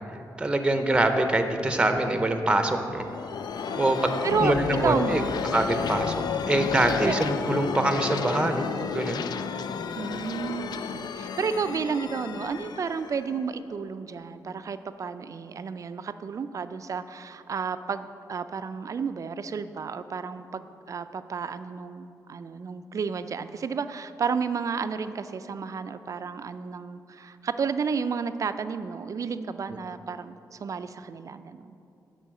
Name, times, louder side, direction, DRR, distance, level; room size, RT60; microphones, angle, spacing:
voice 1, 0.4-3.0 3.8-4.1 4.4-5.2 5.5-6.1 6.5-8.7 8.9-9.2, right 1 dB, 10° right, 6 dB, 0.6 m, -24 dB
sound 1, 2.7-14.2, left 6 dB, 70° left, 0.4 m, -32 dB
voice 2, 4.2-4.5 4.8-5.4 5.7-5.9 7.1-7.2 9.9-31.8, right 5 dB, 45° right, 11 dB, 0.4 m, -32 dB
10.5 x 4.5 x 7.5 m, 2.7 s
wide cardioid pair, 110°, 7 cm